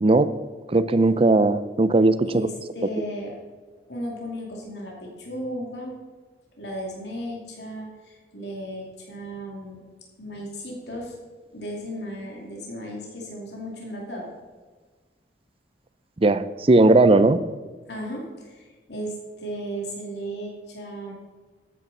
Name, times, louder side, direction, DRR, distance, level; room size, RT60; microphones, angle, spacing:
voice 1, 0.0-0.3 0.7-2.5 16.2-17.4, right 2 dB, 35° right, 13 dB, 0.5 m, -18 dB
voice 2, 2.2-3.4 3.9-5.9 6.6-9.8 10.2-11.1 11.5-14.2 17.9-21.1, equal, 75° left, -2 dB, 2.6 m, -35 dB
13.5 x 9.4 x 4.1 m, 1.4 s
head